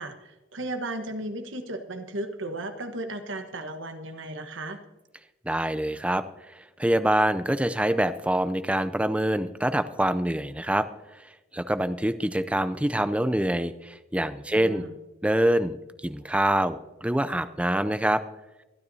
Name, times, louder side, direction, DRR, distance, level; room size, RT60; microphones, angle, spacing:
voice 1, 0.0-4.8 14.5-14.9, right 1 dB, 70° right, 7 dB, 1.2 m, -35 dB
voice 2, 5.5-6.2 6.5-10.9 11.5-14.9 15.2-15.8 16.0-18.2, right 1 dB, 5° right, 11 dB, 0.5 m, -25 dB
24.0 x 9.7 x 2.7 m, 1.1 s
head